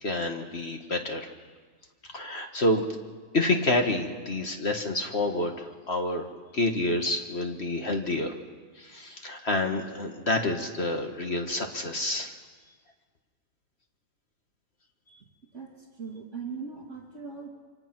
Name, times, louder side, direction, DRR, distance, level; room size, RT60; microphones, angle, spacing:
voice 1, 0.0-1.3 2.1-2.8 3.3-6.3 6.5-8.3 8.8-12.3, left 2 dB, 40° left, 4 dB, 1.7 m, -28 dB
voice 2, 15.5-17.5, right 5 dB, 45° right, -2 dB, 2.6 m, -39 dB
25.5 x 25.5 x 6.0 m, 1.5 s
omnidirectional pair, 1.9 m